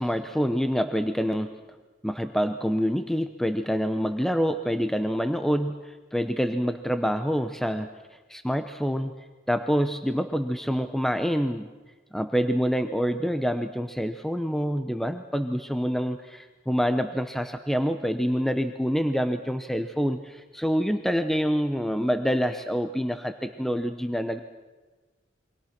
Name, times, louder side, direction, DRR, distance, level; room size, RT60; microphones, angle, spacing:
voice 1, 0.0-1.6 2.0-7.9 8.3-9.1 9.5-11.7 12.1-24.4, equal, ahead, 8 dB, 0.8 m, -26 dB
28.5 x 24.0 x 5.9 m, 1.3 s
head